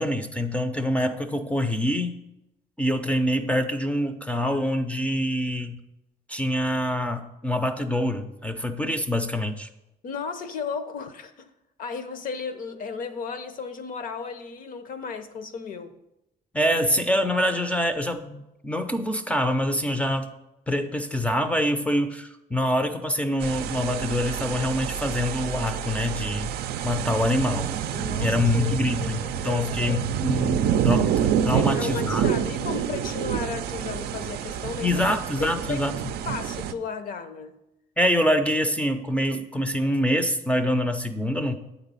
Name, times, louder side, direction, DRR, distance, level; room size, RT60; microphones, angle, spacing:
voice 1, 0.0-2.2 2.8-5.8 6.3-9.7 16.5-20.3 20.7-26.6 26.8-27.7 28.2-32.3 34.8-35.9 38.0-41.6, left 1 dB, 10° left, 8 dB, 0.5 m, -25 dB
voice 2, 10.0-11.5 11.8-16.0 27.9-30.1 31.5-35.0 35.4-35.8 36.3-37.6, left 5 dB, 55° left, 10 dB, 0.7 m, -34 dB
sound 1, 23.4-36.7, right 9 dB, 70° right, 0.4 m, -28 dB
8.6 x 4.0 x 5.4 m, 0.91 s
cardioid pair, 110°, 17 cm